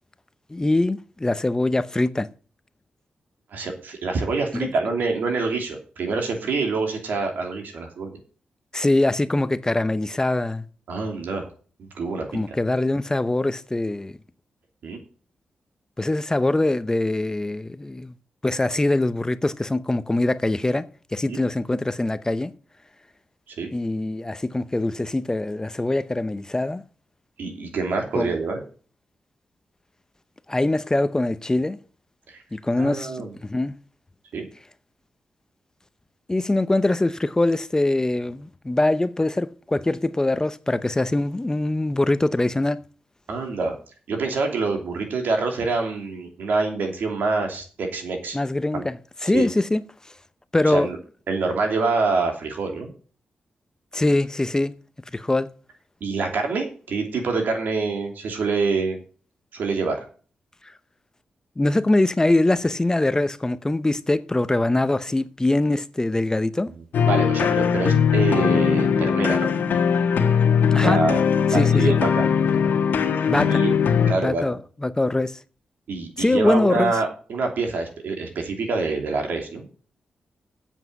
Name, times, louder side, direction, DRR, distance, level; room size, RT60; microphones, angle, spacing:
voice 1, 0.5-2.3 4.5-4.7 8.7-10.6 12.3-14.2 16.0-18.1 18.4-22.5 23.7-26.8 28.1-28.3 30.5-31.8 32.5-33.8 36.3-42.8 48.3-49.0 49.2-49.8 50.5-50.9 53.9-54.7 55.1-55.5 61.6-66.7 70.7-71.0 71.5-71.9 73.3-73.6 74.2-75.4 76.2-76.9, left 2 dB, 20° left, 0.8 m, -23 dB
voice 2, 3.5-8.1 10.9-11.5 11.8-12.5 14.8-15.0 21.3-21.4 23.5-23.7 27.4-28.6 32.3-32.4 32.8-33.3 34.3-34.5 43.3-43.8 44.1-48.4 48.7-48.8 49.3-49.5 50.7-51.0 51.3-52.9 56.0-59.0 59.5-60.0 67.0-69.5 70.8-71.2 71.5-72.2 73.3-73.7 74.1-74.4 75.9-79.7, right 4 dB, 80° right, 3.0 m, -26 dB
sound 1, 66.9-74.1, left 7 dB, 80° left, 1.4 m, -20 dB
8.2 x 7.4 x 8.1 m
cardioid pair, 65°, 3 cm